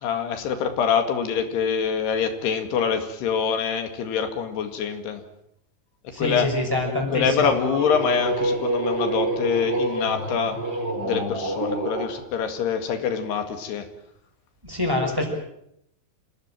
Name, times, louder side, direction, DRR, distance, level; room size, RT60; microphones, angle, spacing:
voice 1, 0.0-5.2 6.2-6.5 7.1-10.6 11.0-13.9, left 7 dB, 85° left, 7 dB, 4.2 m, -25 dB
voice 2, 6.1-7.5 14.6-15.3, left 1 dB, 5° right, 1 dB, 5.7 m, -25 dB
sound 1, 7.2-12.1, right 2 dB, 25° right, 4.4 m, -27 dB
27.5 x 16.5 x 9.1 m, 0.78 s
omnidirectional pair, 4.6 m